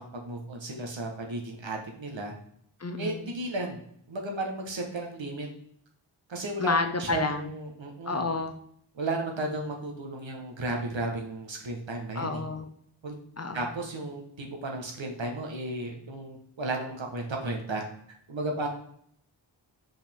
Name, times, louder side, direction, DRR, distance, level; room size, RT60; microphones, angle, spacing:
voice 1, 0.0-2.3 3.0-3.8 4.1-5.5 6.3-8.2 8.9-12.4 13.0-13.1 13.5-17.8 18.3-18.7, right 2 dB, 70° right, 1 dB, 1.5 m, -34 dB
voice 2, 2.8-3.3 6.6-7.5 8.1-8.5 12.1-12.7 13.4-13.7, left 3 dB, 35° left, 7 dB, 0.6 m, -30 dB
5.4 x 5.0 x 3.6 m, 0.66 s
wide cardioid pair, 95°, 46 cm